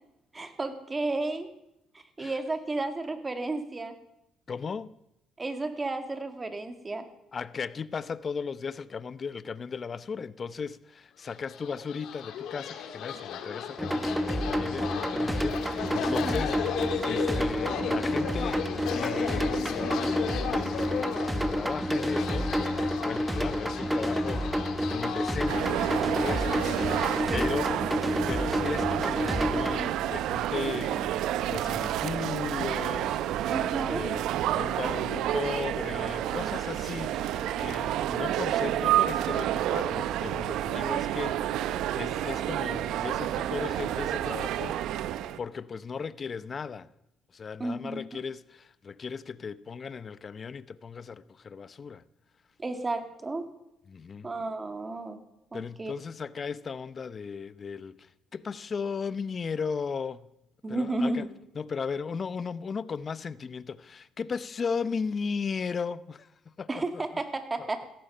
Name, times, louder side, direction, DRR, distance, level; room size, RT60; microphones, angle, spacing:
voice 1, 0.3-1.5 1.9-3.9 5.4-7.1 16.1-16.5 27.3-27.6 33.5-34.0 47.6-48.2 52.6-53.5 54.2-55.2 55.5-55.9 60.6-61.3 66.7-67.9, right 2 dB, 25° right, 2.1 m, -32 dB
voice 2, 4.5-4.9 7.3-18.6 18.9-20.1 20.5-27.7 28.3-34.2 34.5-45.1 45.4-46.9 47.3-52.0 53.9-54.3 55.5-60.3 60.7-61.2 61.6-66.3 66.6-66.7 66.9-67.0 67.6-67.7, left 5 dB, 40° left, 0.8 m, -36 dB
sound 1, 11.4-27.2, left 8 dB, 75° left, 1.9 m, -35 dB
sound 2, 13.8-29.8, equal, 5° right, 1.3 m, -29 dB
sound 3, 25.5-45.4, right 12 dB, 75° right, 0.7 m, -29 dB
16.5 x 14.0 x 5.6 m
cardioid pair, 90°, 0 cm